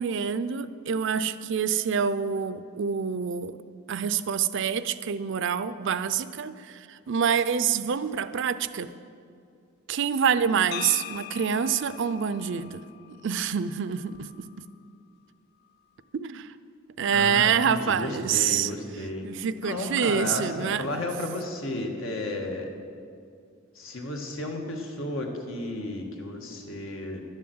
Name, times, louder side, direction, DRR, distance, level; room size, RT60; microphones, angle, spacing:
voice 1, 0.0-3.6 3.9-8.9 9.9-12.8 13.2-14.7 16.1-16.5 17.0-18.8 19.2-20.9, right 7 dB, 60° right, 14 dB, 0.4 m, -26 dB
sound 1, 10.7-14.8, left 12 dB, 50° left, 0.3 m, -42 dB
voice 2, 17.1-19.3 19.6-22.7 23.7-27.2, left 1 dB, 80° left, 2 dB, 1.6 m, -33 dB
12.0 x 7.3 x 7.7 m, 2.4 s
head